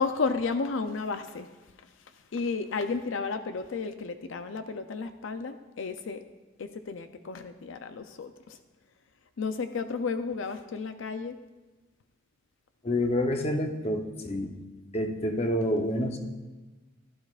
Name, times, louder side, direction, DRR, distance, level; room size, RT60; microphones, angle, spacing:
voice 1, 0.0-1.5 2.3-6.2 6.6-8.6 9.4-11.4, left 4 dB, 75° left, 9 dB, 0.5 m, -32 dB
voice 2, 12.8-14.6 14.9-16.2, left 1 dB, 30° left, 4 dB, 0.8 m, -28 dB
16.0 x 12.0 x 2.4 m, 1.2 s
head